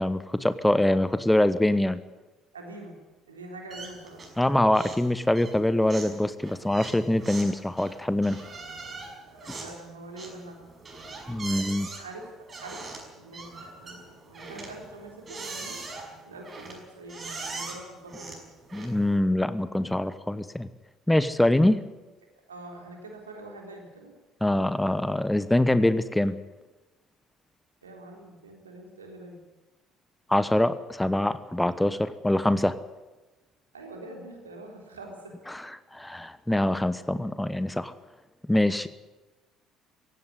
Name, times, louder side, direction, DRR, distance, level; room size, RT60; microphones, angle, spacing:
voice 1, 0.0-2.0 4.4-8.4 11.3-11.9 18.7-20.7 21.1-21.8 24.4-26.4 30.3-32.8 35.5-35.6 35.9-37.9 38.5-38.9, left 1 dB, 5° left, 14 dB, 1.0 m, -24 dB
voice 2, 2.5-3.0 3.3-4.2 9.2-10.7 11.4-15.8 16.2-18.4 22.5-24.1 27.8-29.4 33.7-35.4, right 2 dB, 80° right, 1 dB, 3.8 m, -44 dB
sound 1, 3.7-4.4 4.7-5.1 5.3-19.2, right 3 dB, 30° right, 6.0 m, -41 dB
16.5 x 16.5 x 9.9 m, 1.2 s
figure-of-eight pair, 55°, 0 cm